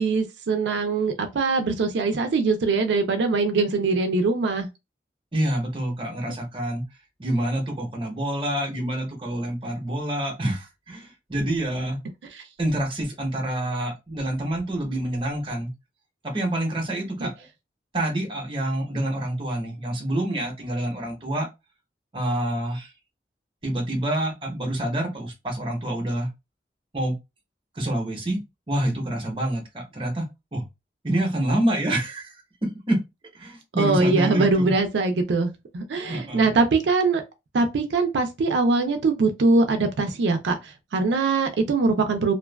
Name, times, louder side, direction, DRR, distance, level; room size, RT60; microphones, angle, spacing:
voice 1, 0.0-4.7 17.2-17.3 33.8-37.2 37.5-42.3, right 3 dB, 85° right, 0.4 m, -22 dB
voice 2, 5.3-6.8 7.2-12.0 12.6-15.7 16.2-17.5 17.9-21.5 22.1-22.9 23.6-26.3 26.9-27.1 27.7-28.4 28.7-30.2 30.5-30.7 31.0-33.0 33.3-34.7 36.1-36.5, right 1 dB, 30° right, 0.7 m, -27 dB
2.5 x 2.2 x 2.2 m
head